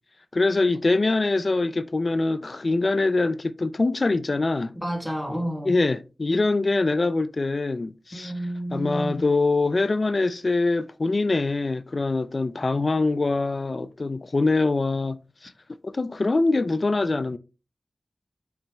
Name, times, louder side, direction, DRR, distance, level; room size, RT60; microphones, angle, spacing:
voice 1, 0.3-4.7 5.6-8.3 8.7-15.5 15.8-17.4, left 3 dB, 50° left, 0.4 m, -24 dB
voice 2, 4.7-5.7 8.1-9.2, equal, 5° left, 1.4 m, -30 dB
7.1 x 6.0 x 2.3 m
wide cardioid pair, 55°, 0 cm